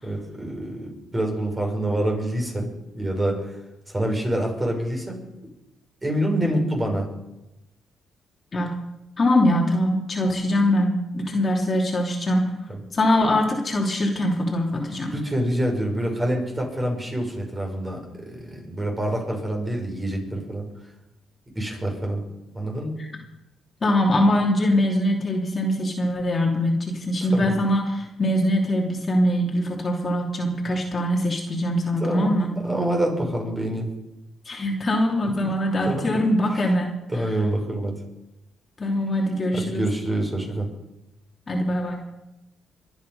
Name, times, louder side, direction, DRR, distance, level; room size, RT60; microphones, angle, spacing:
voice 1, 0.0-2.7 2.9-3.5 3.9-5.3 6.0-7.1 12.7-12.8 15.1-20.6 21.6-22.2 22.5-22.9 27.3-27.6 32.0-32.3 32.6-33.9 35.2-35.6 35.9-36.2 36.5-36.7 37.1-38.0 39.5-40.7, right 1 dB, 20° right, 1 dB, 5.8 m, -26 dB
voice 2, 9.2-12.5 12.9-15.1 23.8-32.6 34.4-37.0 38.8-39.9 41.5-42.0, left 1 dB, 35° left, -1 dB, 3.0 m, -22 dB
23.5 x 9.4 x 5.5 m, 0.93 s
cardioid pair, 90°, 0 cm